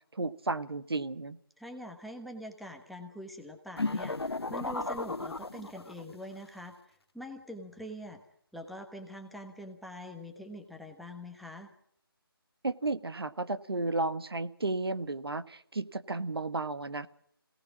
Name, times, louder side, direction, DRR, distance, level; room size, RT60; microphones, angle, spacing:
voice 1, 0.1-1.4 12.6-17.1, right 2 dB, 75° right, 12 dB, 1.5 m, -33 dB
voice 2, 1.6-8.2 8.5-11.7, equal, ahead, 4 dB, 1.1 m, -44 dB
sound 1, 3.8-6.1, left 3 dB, 90° left, 1.2 m, -34 dB
26.0 x 18.0 x 6.1 m, 0.68 s
figure-of-eight pair, 160°, 13 cm